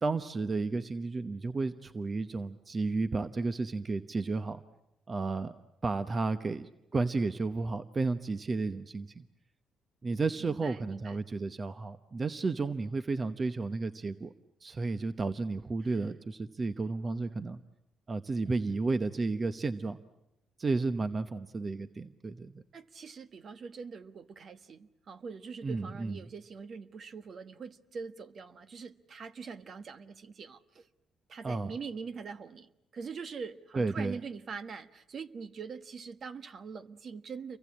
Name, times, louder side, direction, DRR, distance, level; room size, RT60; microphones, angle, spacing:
voice 1, 0.0-4.6 5.1-9.2 10.0-14.3 14.6-17.6 18.1-20.0 20.6-22.6 25.6-26.2 31.4-31.7 33.7-34.2, right 3 dB, 35° right, 1.0 m, -32 dB
voice 2, 10.4-11.2 22.7-30.9 31.3-37.6, right 5 dB, 50° right, 1.3 m, -43 dB
29.0 x 23.5 x 8.6 m
cardioid pair, 90°, 0 cm